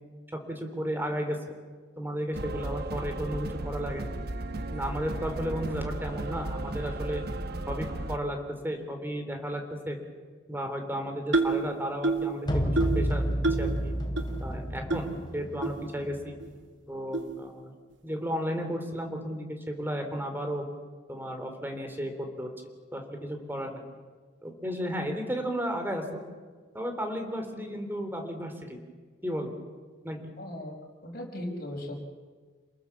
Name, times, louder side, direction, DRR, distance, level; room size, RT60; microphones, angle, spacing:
voice 1, 0.3-1.4 2.0-4.1 4.7-7.2 7.7-10.0 10.5-13.2 13.6-13.9 14.4-16.3 16.9-17.7 18.0-20.6 21.1-22.5 22.9-23.8 24.4-26.2 26.7-28.8 29.2-29.5 30.0-30.2, equal, 10° right, 5 dB, 3.4 m, -33 dB
sound 1, 2.3-8.2, right 2 dB, 60° right, 1.2 m, -35 dB
sound 2, 11.3-11.6 12.0-12.3 12.8-13.0 13.4-13.7 14.2-14.3 14.9-15.0 15.6-15.7 16.4-16.5 17.1-17.3, right 3 dB, 85° right, 2.1 m, -26 dB
sound 3, 12.5-16.5, equal, 25° left, 3.0 m, -30 dB
voice 2, 30.4-30.8 31.0-32.0, left 1 dB, 55° left, -1 dB, 5.0 m, -37 dB
28.5 x 20.0 x 7.3 m, 1.5 s
head